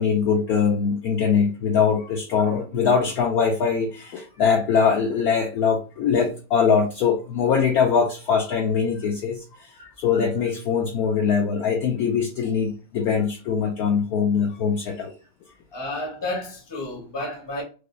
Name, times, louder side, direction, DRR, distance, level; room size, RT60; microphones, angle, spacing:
voice 1, 0.0-15.1, left 6 dB, 70° left, 0.9 m, -22 dB
voice 2, 15.7-17.6, left 2 dB, 20° left, 0.7 m, -31 dB
4.9 x 2.1 x 2.3 m
omnidirectional pair, 2.0 m